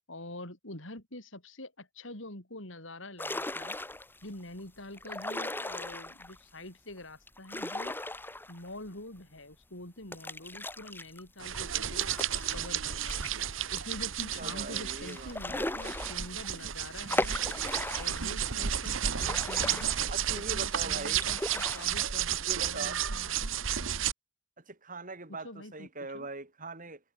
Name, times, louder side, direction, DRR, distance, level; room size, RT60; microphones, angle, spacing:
voice 1, 0.1-3.8 4.2-8.0 8.5-13.2 13.7-17.4 17.9-19.9 20.3-23.4 25.3-25.9 26.1-26.3, left 1 dB, 75° left, 7.6 m, -46 dB
sound 1, 3.2-4.2 4.9-6.4 7.3-8.9 9.2-9.3 10.1-13.4 13.8-13.9 14.2-14.3 15.1-16.6 17.1-18.4 18.8-20.5 21.0-22.1, left 2 dB, 10° left, 2.1 m, -37 dB
sound 2, 11.4-24.1, right 9 dB, 85° right, 1.3 m, -32 dB
voice 2, 14.4-15.8 20.1-21.2 22.4-23.0 24.7-27.0, right 3 dB, 45° right, 6.2 m, -42 dB
head